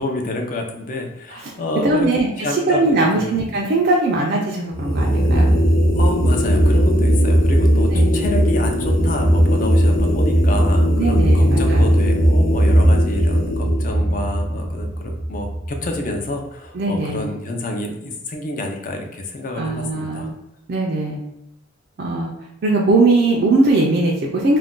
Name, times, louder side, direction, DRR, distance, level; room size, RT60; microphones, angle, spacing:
voice 1, 0.0-2.1 2.4-3.3 5.9-20.3, left 1 dB, 40° left, 3 dB, 0.4 m, -28 dB
voice 2, 1.8-2.3 2.7-5.5 7.9-8.0 11.0-11.9 16.7-17.3 19.6-20.3 20.7-21.2 22.0-22.3 22.6-24.6, right 2 dB, 50° right, -2 dB, 0.4 m, -19 dB
sound 1, 4.7-16.0, equal, 80° left, 0.7 m, -17 dB
2.4 x 2.2 x 3.6 m, 0.86 s
head